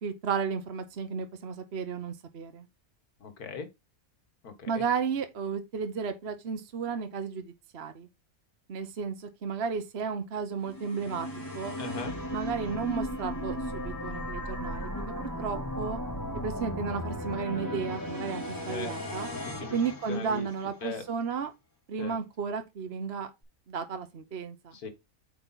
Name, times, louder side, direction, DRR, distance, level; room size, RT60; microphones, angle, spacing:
voice 1, 0.0-2.6 4.7-8.1 8.7-11.3 11.5-11.8 12.3-14.9 15.2-16.0 16.4-19.3 19.7-21.5 21.9-23.3 23.7-24.7, right 6 dB, 45° right, 1.2 m, -33 dB
voice 2, 3.2-3.7 4.4-4.8 11.8-12.1 18.7-19.0 19.4-19.8 20.1-20.5 20.8-21.0 22.0-22.2 24.7-24.9, left 4 dB, 80° left, 2.0 m, -38 dB
sound 1, 10.6-20.9, equal, 10° left, 3.9 m, -36 dB
8.6 x 4.6 x 4.1 m
omnidirectional pair, 1.6 m